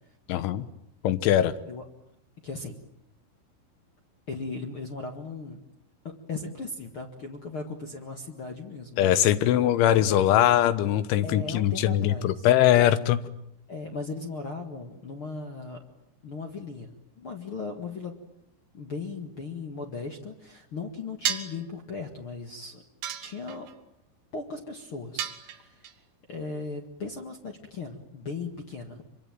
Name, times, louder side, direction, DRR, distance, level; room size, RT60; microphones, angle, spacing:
voice 1, 0.3-0.7 1.0-1.5 9.0-13.2, left 12 dB, 85° left, 13 dB, 3.6 m, -21 dB
voice 2, 2.4-2.8 4.3-5.6 6.0-10.1 11.2-12.5 13.7-15.8 16.2-18.2 18.7-22.8 23.2-23.7 24.3-26.0 26.3-29.0, left 4 dB, 55° left, 3 dB, 1.5 m, -37 dB
sound 1, 21.3-21.7 23.0-23.7 25.2-25.9, right 10 dB, 65° right, 3.1 m, -32 dB
25.5 x 25.0 x 9.2 m, 0.81 s
omnidirectional pair, 5.3 m